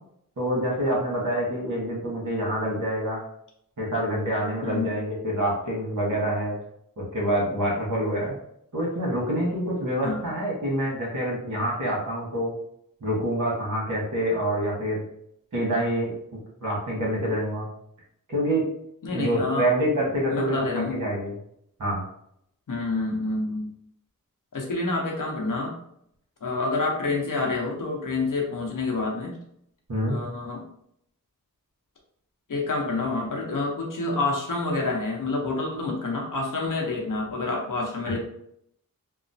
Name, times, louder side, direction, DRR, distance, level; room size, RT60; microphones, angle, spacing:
voice 1, 0.4-3.2 3.8-6.6 7.0-8.3 8.7-12.5 13.0-15.0 15.5-16.1 16.6-17.7 18.3-18.6 19.1-21.3 21.8-22.0 29.9-30.2, right 1 dB, 60° right, -3 dB, 1.2 m, -26 dB
voice 2, 19.0-19.7 20.3-21.0 22.7-23.7 24.5-25.7 26.4-29.4 30.1-30.6 32.5-38.2, left 3 dB, 65° left, -1 dB, 0.8 m, -28 dB
3.0 x 2.0 x 2.6 m, 0.71 s
wide cardioid pair, 85°, 35 cm